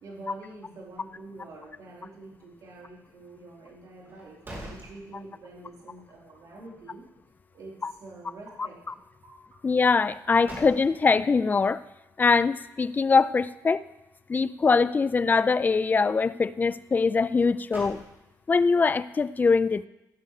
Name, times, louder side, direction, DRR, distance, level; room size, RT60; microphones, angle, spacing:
voice 1, 0.0-7.1 7.5-8.8 9.2-9.3, right 2 dB, 60° right, -5 dB, 3.9 m, -46 dB
sound 1, 4.1-5.7 6.1-6.2 10.0-11.3 17.3-18.6, right 1 dB, 30° right, 2.5 m, -45 dB
voice 2, 9.6-11.8 12.2-13.8 14.3-18.0 18.5-19.9, left 4 dB, 25° left, 16 dB, 0.3 m, -22 dB
16.0 x 6.8 x 4.9 m, 0.96 s
cardioid pair, 130°, 7 cm